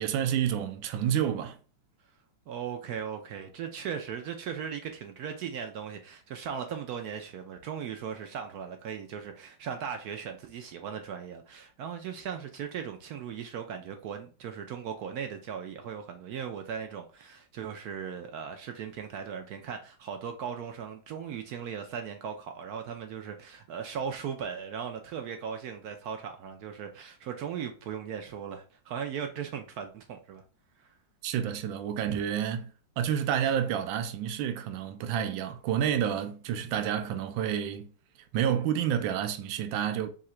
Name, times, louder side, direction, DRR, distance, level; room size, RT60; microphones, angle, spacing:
voice 1, 0.0-1.6 31.2-37.9 38.3-40.1, right 9 dB, 85° right, 1.4 m, -29 dB
voice 2, 2.5-30.4 30.8-30.9 32.1-32.2, right 7 dB, 70° right, 0.9 m, -38 dB
3.7 x 2.8 x 4.3 m
omnidirectional pair, 2.1 m